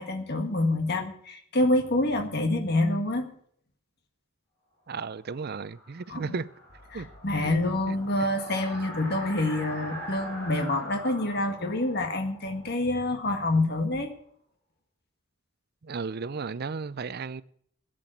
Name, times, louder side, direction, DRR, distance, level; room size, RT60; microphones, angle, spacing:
voice 1, 0.0-3.3 6.1-6.4 6.9-14.1, left 2 dB, 55° left, 1.8 m, -27 dB
voice 2, 4.9-6.4 6.9-7.1 7.4-7.6 7.9-8.0 15.8-17.4, right 4 dB, 50° right, 0.5 m, -34 dB
sound 1, 5.2-13.9, equal, 10° left, 6.3 m, -43 dB
12.0 x 7.7 x 9.0 m
head